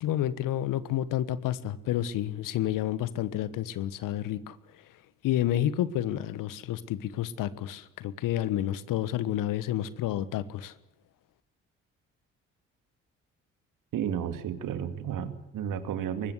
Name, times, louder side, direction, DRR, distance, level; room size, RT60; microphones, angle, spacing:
voice 1, 0.0-4.6 5.2-10.7, left 12 dB, 60° left, 16 dB, 1.4 m, -30 dB
voice 2, 13.9-16.3, right 9 dB, 60° right, 9 dB, 2.5 m, -32 dB
24.0 x 21.0 x 8.1 m, 0.82 s
figure-of-eight pair, 45°, 37 cm